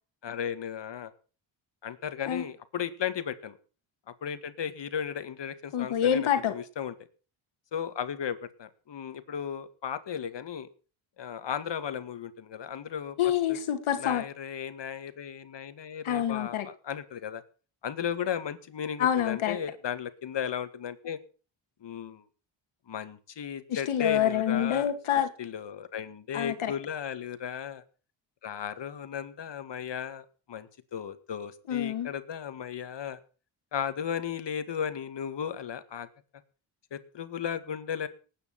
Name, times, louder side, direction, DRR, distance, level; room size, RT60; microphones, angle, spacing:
voice 1, 0.2-1.1 1.8-3.6 4.2-6.9 7.7-10.7 11.2-13.2 13.5-13.6 14.0-17.4 17.8-21.2 21.8-22.3 22.9-24.9 25.4-27.8 28.4-33.2 33.7-36.1 36.9-38.1, left 8 dB, 55° left, 11 dB, 2.1 m, -35 dB
voice 2, 5.7-6.5 13.2-14.2 16.0-16.7 19.0-19.6 23.7-25.3 26.3-26.7 31.7-32.1, left 10 dB, 75° left, 7 dB, 2.2 m, -27 dB
19.0 x 9.3 x 6.0 m, 0.38 s
cardioid pair, 85°, 50 cm